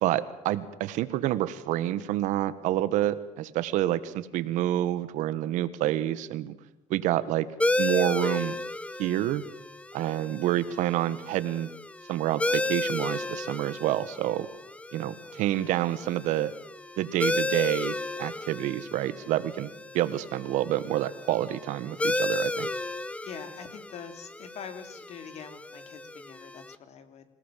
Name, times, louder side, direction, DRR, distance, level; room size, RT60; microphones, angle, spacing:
voice 1, 0.0-6.5 6.9-7.5 7.8-8.6 9.0-9.4 9.9-11.7 12.1-14.5 14.9-16.5 17.0-22.7, right 13 dB, 85° right, 14 dB, 1.4 m, -28 dB
sound 1, 7.6-26.7, left 2 dB, 10° left, 0.8 m, -33 dB
voice 2, 23.2-27.2, left 7 dB, 60° left, 8 dB, 3.0 m, -44 dB
27.0 x 18.0 x 7.5 m, 0.93 s
cardioid pair, 110°, 13 cm